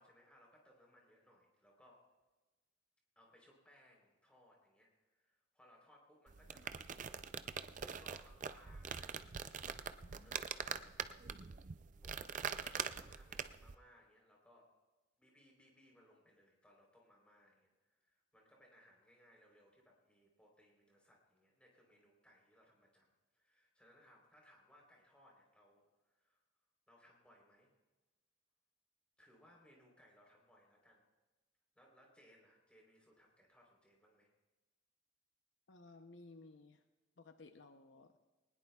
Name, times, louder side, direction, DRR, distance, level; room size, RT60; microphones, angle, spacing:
voice 1, 0.0-2.1 3.2-7.2 7.6-10.9 12.0-14.7 15.2-26.4 26.9-27.7 29.2-31.0 31.8-34.3, equal, 5° left, -1 dB, 3.6 m, -67 dB
sound 1, 6.3-13.7, right 7 dB, 40° right, 0.4 m, -44 dB
voice 2, 10.0-10.4 35.7-36.8 37.2-38.1, left 3 dB, 65° left, 7 dB, 0.7 m, -58 dB
21.0 x 19.5 x 2.3 m, 1.2 s
head